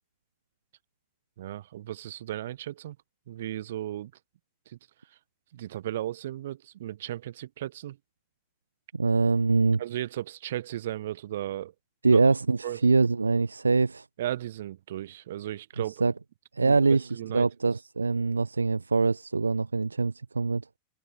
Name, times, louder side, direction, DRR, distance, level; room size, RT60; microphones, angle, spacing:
voice 1, 1.4-3.0 3.3-4.1 4.7-4.8 5.5-8.0 9.8-11.7 12.0-12.2 12.6-12.8 14.2-16.1 16.6-17.5, right 13 dB, 60° right, 1.4 m, -35 dB
voice 2, 8.9-9.8 12.0-14.1 16.0-16.1 16.5-20.6, right 4 dB, 80° right, 0.3 m, -24 dB
open air
figure-of-eight pair, 90°, 0 cm